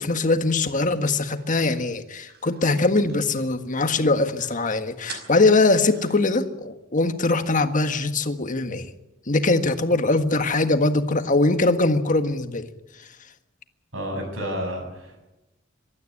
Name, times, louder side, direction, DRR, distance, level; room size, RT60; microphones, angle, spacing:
voice 1, 0.0-8.9 9.3-12.7, left 2 dB, 40° left, 8 dB, 1.6 m, -22 dB
sound 1, 1.4-3.7 4.1-4.2 4.3-4.6 5.1-6.4, right 5 dB, 55° right, 5.4 m, -45 dB
voice 2, 13.9-15.2, equal, 75° right, 3 dB, 7.5 m, -30 dB
24.0 x 13.0 x 9.8 m, 0.99 s
head